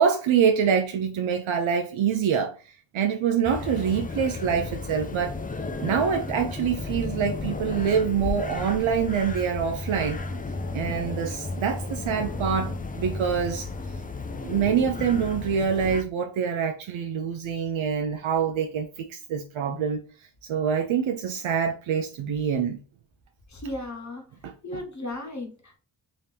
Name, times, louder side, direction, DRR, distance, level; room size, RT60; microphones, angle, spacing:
voice 1, 0.0-2.5 2.9-5.3 5.8-10.2 10.7-13.7 14.4-20.0 20.5-22.8 24.4-24.8, right 7 dB, 80° right, 0.6 m, -25 dB
sound 1, 3.4-16.0, left 3 dB, 20° left, 0.3 m, -33 dB
voice 2, 23.5-24.2 24.6-25.8, left 1 dB, 35° left, 1.1 m, -35 dB
3.7 x 2.8 x 3.4 m
wide cardioid pair, 75°, 47 cm